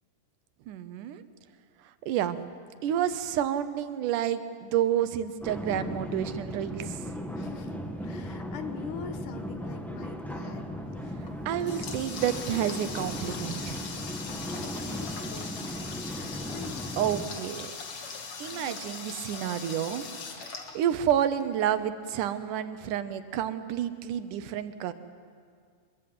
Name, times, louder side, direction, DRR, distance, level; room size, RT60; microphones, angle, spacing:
voice 1, 0.7-1.2 2.0-2.4 2.8-7.1 11.5-13.8 17.0-17.7 18.4-20.0 20.4-24.9, right 10 dB, 90° right, 12 dB, 2.5 m, -29 dB
sound 1, 5.4-17.3, equal, ahead, 0.8 m, -37 dB
voice 2, 7.4-7.8 8.0-10.7 11.0-11.2 14.3-15.9 16.1-16.9 18.5-18.8, left 7 dB, 90° left, 8 dB, 2.9 m, -44 dB
Water tap faucet, 11.2-21.4, left 5 dB, 50° left, 2.7 m, -40 dB
25.0 x 22.0 x 7.8 m, 2.1 s
omnidirectional pair, 3.5 m